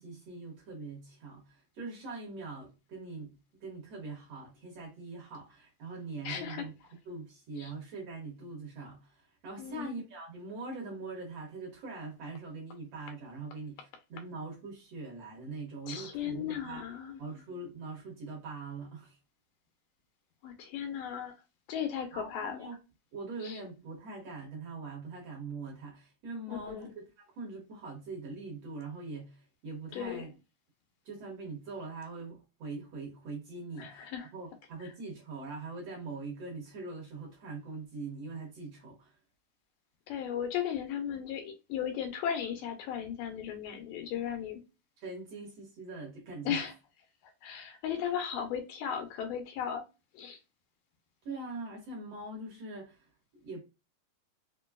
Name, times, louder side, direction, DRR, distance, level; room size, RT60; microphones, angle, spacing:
voice 1, 0.0-6.8 7.1-16.9 17.2-19.2 22.1-22.8 23.1-30.3 31.1-39.2 45.0-46.7 51.2-53.6, right 3 dB, 60° right, 1.9 m, -42 dB
voice 2, 6.2-6.6 7.6-7.7 9.6-9.9 15.9-17.2 20.4-21.3 21.7-22.7 23.4-23.5 26.5-26.9 29.9-30.3 33.8-34.3 40.1-44.6 46.5-46.7 47.4-49.8 50.1-50.4, left 8 dB, 90° left, 2.4 m, -36 dB
5.3 x 2.2 x 2.2 m
omnidirectional pair, 3.8 m